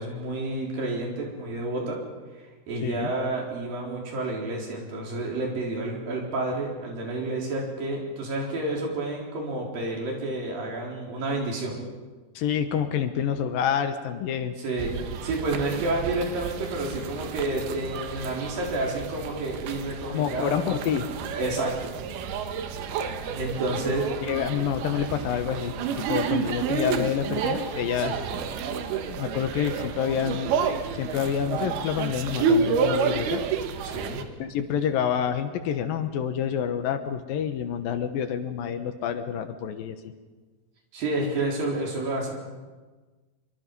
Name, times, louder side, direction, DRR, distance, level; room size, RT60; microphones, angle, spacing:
voice 1, 0.0-2.0 2.7-11.8 14.6-14.9 15.2-20.8 21.4-21.9 23.3-24.7 28.0-28.2 33.8-34.2 40.9-42.3, right 2 dB, 65° right, -1 dB, 5.7 m, -30 dB
voice 2, 2.8-3.1 12.4-14.6 20.1-21.1 24.2-28.1 29.0-30.5 30.9-33.4 34.4-40.1, left 8 dB, 75° left, 8 dB, 2.8 m, -28 dB
sound 1, 14.8-34.2, right 5 dB, 85° right, 3.3 m, -30 dB
25.0 x 24.0 x 5.4 m, 1.3 s
omnidirectional pair, 4.3 m